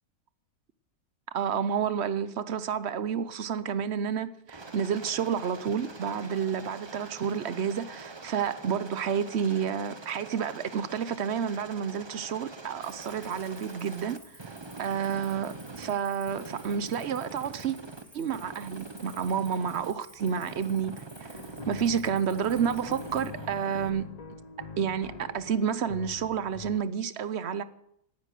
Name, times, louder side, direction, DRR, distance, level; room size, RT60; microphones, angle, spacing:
voice 1, 1.3-14.2 14.8-17.8 18.1-21.0 21.7-24.4 24.8-27.6, right 7 dB, 50° right, 0.8 m, -30 dB
Aircraft, 4.5-16.0 16.3-18.0 18.3-19.9 20.2-22.0 22.3-23.9, right 3 dB, 25° right, 0.6 m, -44 dB
Cricket, 12.8-23.3, equal, 15° left, 5.0 m, -53 dB
sound 1, 21.3-26.8, left 4 dB, 35° left, 0.6 m, -43 dB
17.5 x 9.6 x 6.7 m
omnidirectional pair, 1.7 m